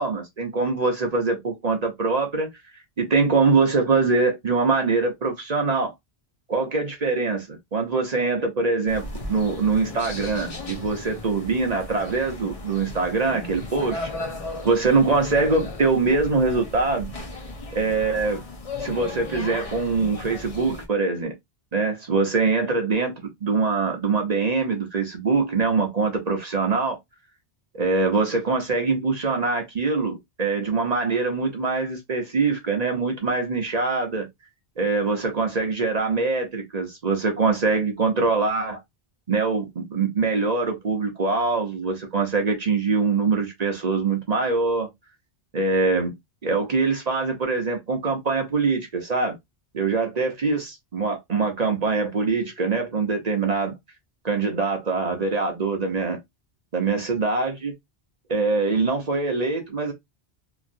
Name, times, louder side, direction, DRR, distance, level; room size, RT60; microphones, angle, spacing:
voice 1, 0.0-2.5 3.0-5.9 6.5-14.3 14.6-17.1 17.7-18.4 18.8-21.3 21.7-27.0 27.7-34.3 34.8-38.8 39.3-44.9 45.5-46.2 46.4-49.4 49.7-53.7 54.2-56.2 56.7-57.7 58.3-59.9, right 4 dB, 45° right, 0.7 m, -23 dB
sound 1, 8.9-20.9, left 2 dB, 40° left, 0.7 m, -36 dB
3.0 x 2.6 x 2.5 m
omnidirectional pair, 1.1 m